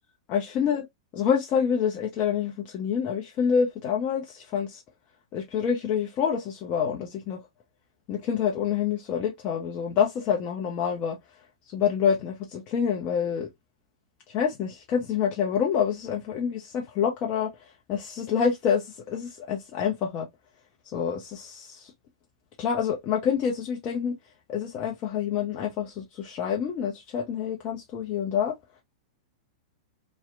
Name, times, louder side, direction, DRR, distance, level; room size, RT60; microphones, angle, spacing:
voice 1, 0.3-0.8 1.1-4.8 5.3-7.4 8.1-11.2 11.7-13.5 14.3-17.5 17.9-20.3 20.9-21.9 22.6-24.1 24.5-28.5, left 7 dB, 35° left, 0.5 m, -27 dB
2.7 x 2.0 x 2.4 m
figure-of-eight pair, 100°, 3 cm